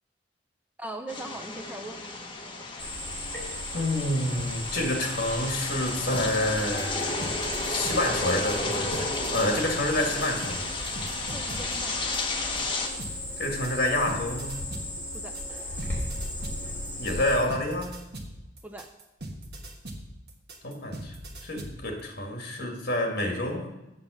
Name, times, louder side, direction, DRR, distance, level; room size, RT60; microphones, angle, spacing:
voice 1, 0.8-2.0 11.3-12.2 15.1-15.4 18.6-18.9, right 1 dB, 10° right, 6 dB, 0.4 m, -40 dB
sound 1, 1.1-12.9, left 3 dB, 25° left, 1.0 m, -33 dB
Cricket, 2.8-17.3, left 1 dB, 10° left, 3.7 m, -36 dB
voice 2, 3.7-7.4 7.7-9.1 9.3-10.7 13.4-14.6 17.0-18.0 20.6-21.2 21.4-23.7, left 1 dB, 55° left, 2 dB, 1.7 m, -28 dB
sound 2, 6.1-12.6 13.0-21.8, right 1 dB, 60° right, 1.3 m, -41 dB
7.5 x 7.4 x 6.2 m, 0.99 s
head